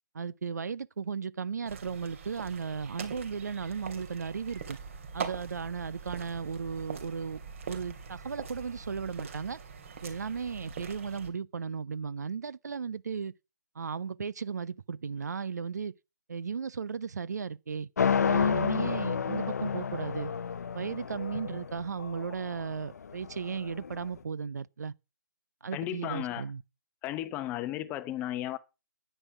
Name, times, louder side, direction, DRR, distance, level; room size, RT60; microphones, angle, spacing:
voice 1, 0.1-4.8 5.1-7.4 7.7-9.6 10.0-13.3 13.7-15.9 16.3-17.9 18.3-20.3 20.7-24.9 25.6-26.6, right 6 dB, 60° right, 0.7 m, -35 dB
sound 1, 1.7-11.3, right 6 dB, 45° right, 3.1 m, -43 dB
sound 2, 18.0-24.0, left 6 dB, 60° left, 0.7 m, -30 dB
voice 2, 25.7-26.4 27.0-28.6, left 13 dB, 15° left, 0.8 m, -34 dB
10.5 x 9.8 x 5.8 m
figure-of-eight pair, 145°, 10 cm